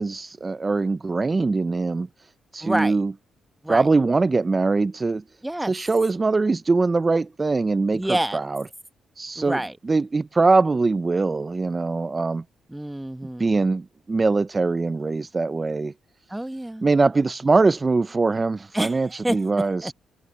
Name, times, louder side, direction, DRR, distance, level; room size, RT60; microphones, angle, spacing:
voice 1, 0.0-3.1 3.7-5.2 5.7-8.6 9.2-9.6 9.8-12.4 13.4-15.9 16.8-19.9, right 3 dB, 30° right, 0.4 m, -22 dB
voice 2, 2.6-3.0 3.6-3.8 5.4-5.7 7.9-8.4 9.4-9.7 12.7-13.6 16.3-16.9 18.7-19.0 19.2-19.9, right 1 dB, 10° right, 1.4 m, -28 dB
cardioid pair, 85°, 0 cm